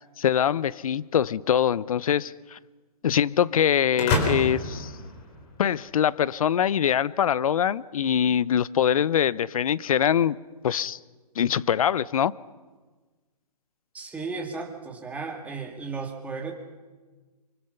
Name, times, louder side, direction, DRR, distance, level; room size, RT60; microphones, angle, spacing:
voice 1, 0.0-2.6 3.0-4.9 5.6-10.4 10.6-11.0 11.4-12.3, left 9 dB, 60° left, 0.7 m, -23 dB
sound 1, 4.0-5.9, left 2 dB, 30° left, 4.2 m, -28 dB
voice 2, 13.9-16.5, right 4 dB, 5° right, 2.3 m, -34 dB
25.0 x 24.5 x 5.7 m
hypercardioid pair, 140°, 20 cm